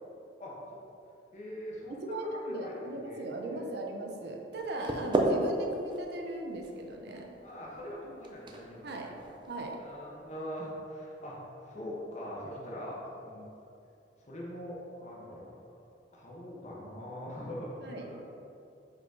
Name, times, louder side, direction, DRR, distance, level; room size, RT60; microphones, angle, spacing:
voice 1, 0.4-0.8 1.3-3.7 4.9-5.1 7.4-9.2 9.7-13.5 14.3-15.6 16.1-18.1, equal, 40° left, -4 dB, 1.2 m, -42 dB
voice 2, 1.9-7.3 8.8-9.1 9.5-9.8 17.8-18.2, right 1 dB, 65° right, 1 dB, 0.7 m, -38 dB
sound 1, 4.5-10.4, right 1 dB, 25° right, 0.5 m, -35 dB
5.1 x 4.3 x 4.7 m, 2.7 s
head